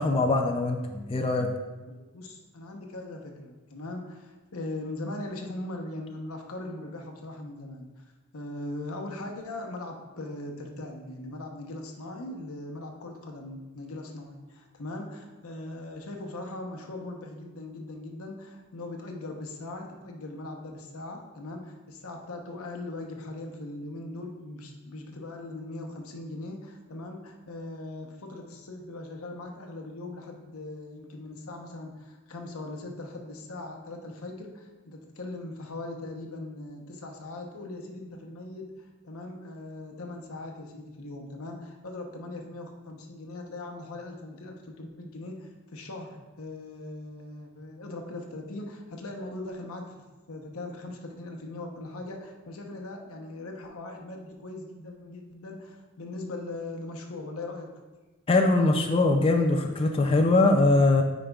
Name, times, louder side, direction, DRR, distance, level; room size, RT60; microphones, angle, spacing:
voice 1, 0.0-1.5 58.3-61.0, left 2 dB, 25° left, 3 dB, 0.4 m, -22 dB
voice 2, 1.9-8.0 8.3-49.9 50.3-57.7, left 2 dB, 85° left, 2 dB, 0.9 m, -40 dB
8.8 x 5.1 x 2.3 m, 1.2 s
head